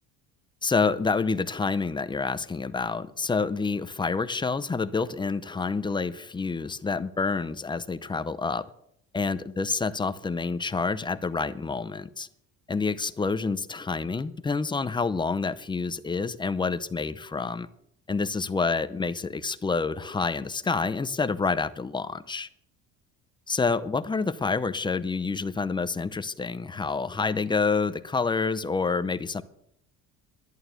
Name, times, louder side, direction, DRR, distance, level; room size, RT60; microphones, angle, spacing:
voice 1, 0.6-8.6 9.1-12.3 12.7-17.7 18.1-22.5 23.5-29.4, left 4 dB, 15° left, 0.6 m, -28 dB
11.5 x 11.0 x 8.1 m
cardioid pair, 140°, 31 cm